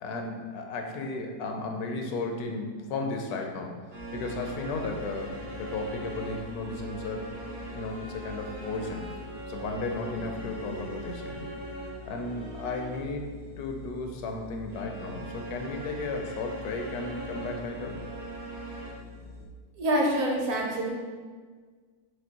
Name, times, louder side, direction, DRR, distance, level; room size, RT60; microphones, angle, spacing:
voice 1, 0.0-3.8 4.1-7.2 7.7-9.0 9.5-11.4 12.1-13.3 13.6-18.0, left 3 dB, 80° left, 3 dB, 1.1 m, -34 dB
sound 1, 3.9-13.2 14.7-18.9, right 2 dB, 85° right, 1.5 m, -41 dB
sound 2, 4.0-19.5, left 3 dB, 55° left, 0.5 m, -46 dB
voice 2, 19.7-20.9, right 1 dB, 65° right, -1 dB, 1.1 m, -26 dB
5.2 x 3.1 x 2.8 m, 1.5 s
omnidirectional pair, 1.7 m